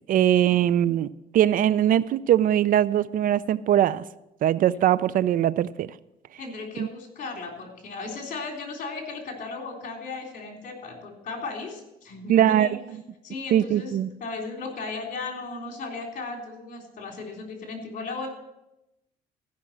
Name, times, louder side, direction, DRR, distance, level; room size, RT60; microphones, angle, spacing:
voice 1, 0.1-4.0 4.4-5.9 6.8-6.9 12.3-12.7 13.5-14.1, right 11 dB, 55° right, 18 dB, 0.4 m, -21 dB
voice 2, 6.4-12.7 13.2-13.9 14.2-18.3, left 3 dB, 50° left, 2 dB, 3.6 m, -36 dB
15.0 x 6.0 x 7.3 m, 0.90 s
cardioid pair, 110°, 17 cm